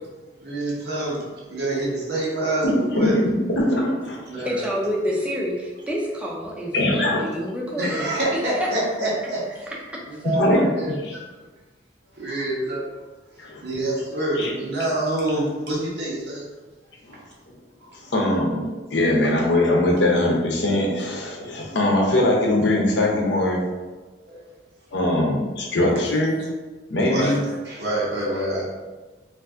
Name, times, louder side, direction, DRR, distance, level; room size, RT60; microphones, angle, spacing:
voice 1, 0.4-3.2 4.3-4.6 7.8-9.7 10.1-11.2 12.1-12.9 13.6-16.4 17.1-17.2 17.8-17.9 24.3-24.5 27.1-28.6, right 1 dB, 65° right, -5 dB, 1.0 m, -26 dB
voice 2, 3.0-4.5 6.7-7.2 10.2-10.7 13.4-13.7 14.4-14.5 17.1-17.2 18.1-18.6 18.9-23.6 24.9-26.4 26.9-27.4, left 1 dB, 75° left, -1 dB, 0.7 m, -21 dB
voice 3, 4.4-8.1, equal, 5° right, -3 dB, 0.5 m, -28 dB
2.6 x 2.6 x 3.5 m, 1.3 s
head